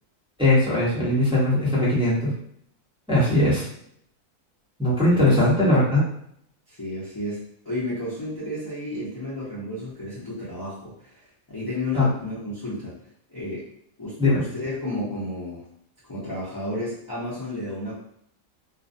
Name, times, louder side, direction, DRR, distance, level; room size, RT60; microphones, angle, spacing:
voice 1, 0.4-2.3 3.1-3.6 4.8-6.0 11.9-12.1 14.2-14.4, left 1 dB, 5° right, -9 dB, 0.6 m, -20 dB
voice 2, 5.1-5.4 6.7-13.0 13.3-13.7 14.0-15.7 16.1-17.9, left 1 dB, 35° left, -11 dB, 0.3 m, -32 dB
2.4 x 2.1 x 2.6 m, 0.70 s
omnidirectional pair, 1.5 m